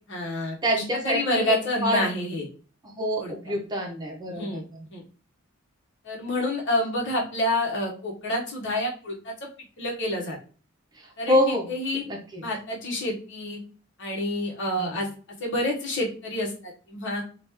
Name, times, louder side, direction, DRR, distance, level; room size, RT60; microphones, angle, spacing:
voice 1, 0.1-2.5 3.2-3.5 4.3-4.6 4.9-5.0 6.0-9.5 9.8-10.4 11.2-11.4 11.7-12.0 12.4-13.6 14.0-15.1 15.4-16.5 16.9-17.2, left 1 dB, 60° left, -2 dB, 1.1 m, -28 dB
voice 2, 0.6-2.1 2.9-4.9 11.0-11.7 12.1-12.4 14.7-15.0, equal, 20° right, 0 dB, 0.9 m, -27 dB
3.0 x 2.5 x 3.5 m, 0.38 s
head